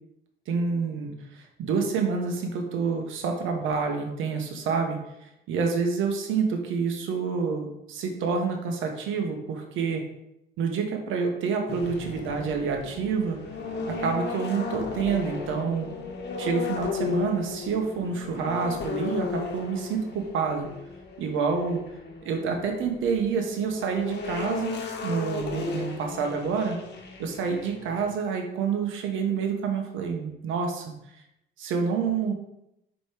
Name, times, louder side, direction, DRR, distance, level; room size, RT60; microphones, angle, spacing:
voice 1, 0.5-10.0 10.6-13.4 13.9-15.9 16.4-20.7 21.2-21.8 22.2-26.8 27.2-30.9 31.6-32.3, right 5 dB, 90° right, 3 dB, 1.2 m, -28 dB
sound 1, 11.7-28.1, left 4 dB, 60° left, 1.3 m, -35 dB
5.1 x 4.8 x 5.1 m, 0.84 s
cardioid pair, 90°, 20 cm